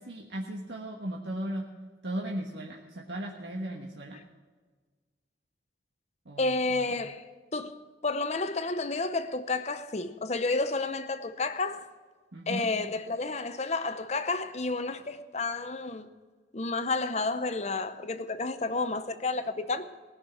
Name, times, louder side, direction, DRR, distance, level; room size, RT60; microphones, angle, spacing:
voice 1, 0.0-1.6 2.0-4.2 6.2-6.8 12.3-12.7, right 1 dB, 70° right, 1.4 m, -36 dB
voice 2, 6.4-7.3 7.5-11.9 12.5-16.1 16.5-19.9, left 3 dB, 35° left, 0.7 m, -31 dB
19.5 x 6.5 x 7.7 m
head